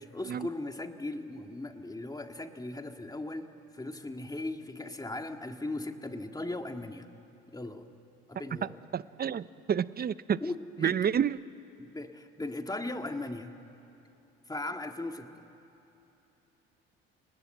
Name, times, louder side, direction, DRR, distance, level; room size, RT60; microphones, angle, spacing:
voice 1, 0.0-3.5 3.7-7.1 7.5-7.9 8.3-8.8 10.4-11.0 11.8-13.5 14.5-15.4, left 2 dB, 10° left, 6 dB, 1.9 m, -38 dB
voice 2, 8.6-10.4 10.8-11.4, right 8 dB, 30° right, 18 dB, 0.6 m, -29 dB
29.0 x 19.0 x 7.9 m, 2.9 s
hypercardioid pair, 65°, 32 cm